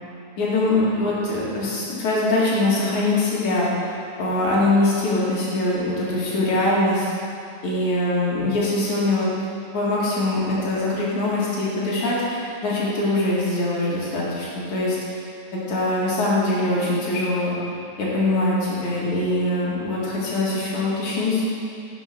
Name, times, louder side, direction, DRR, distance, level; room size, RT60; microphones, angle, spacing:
voice 1, 0.4-3.9 4.2-7.1 7.6-9.3 9.7-15.2 15.5-17.6 18.0-21.4, left 2 dB, 60° left, -6 dB, 3.3 m, -23 dB
10.5 x 7.2 x 5.1 m, 2.4 s
omnidirectional pair, 3.9 m